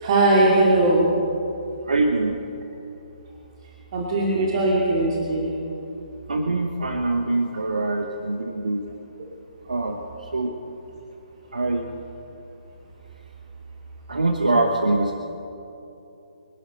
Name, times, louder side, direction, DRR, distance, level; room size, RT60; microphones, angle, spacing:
voice 1, 0.0-1.1 3.9-5.5, right 2 dB, 40° right, -3 dB, 2.3 m, -19 dB
voice 2, 1.9-2.4 6.3-8.8 9.7-10.0 10.3-10.5 11.5-11.9 14.1-15.2, right 2 dB, 70° right, 4 dB, 1.2 m, -23 dB
24.5 x 11.5 x 4.1 m, 2.9 s
figure-of-eight pair, 135°, 4 cm